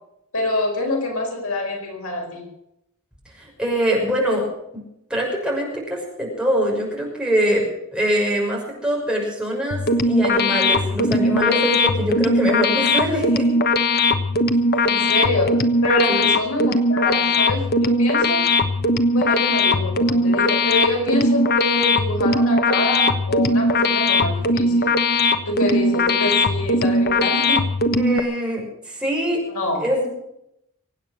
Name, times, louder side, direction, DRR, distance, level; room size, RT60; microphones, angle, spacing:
voice 1, 0.3-2.5 14.8-18.6 19.1-24.9 25.5-27.7 29.5-29.8, left 2 dB, 90° left, 1 dB, 4.8 m, -26 dB
voice 2, 3.3-4.5 4.7-4.8 5.1-13.5 16.1-16.3 28.0-29.4 29.8-30.1, equal, 5° right, -2 dB, 6.2 m, -23 dB
sound 1, 9.7-28.2, left 2 dB, 45° left, 1.2 m, -19 dB
24.0 x 9.0 x 6.4 m, 0.79 s
head